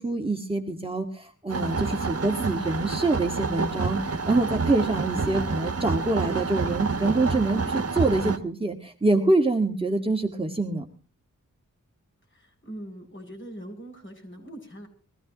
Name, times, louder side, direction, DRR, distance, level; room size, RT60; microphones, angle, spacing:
voice 1, 0.0-10.9, right 2 dB, 15° right, 2 dB, 1.9 m, -25 dB
sound 1, 1.5-8.4, right 4 dB, 50° right, 1.5 m, -28 dB
voice 2, 12.3-14.9, right 1 dB, 40° left, 1 dB, 7.6 m, -42 dB
22.5 x 15.5 x 3.0 m, 0.40 s
wide cardioid pair, 75°, 31 cm